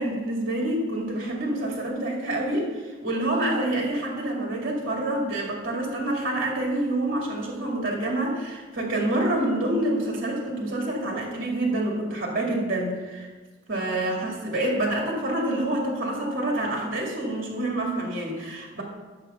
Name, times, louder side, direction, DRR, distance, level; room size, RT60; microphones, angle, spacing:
voice 1, 0.0-13.3 13.7-18.8, right 1 dB, 45° right, -1 dB, 2.3 m, -27 dB
11.5 x 7.0 x 5.6 m, 1.3 s
head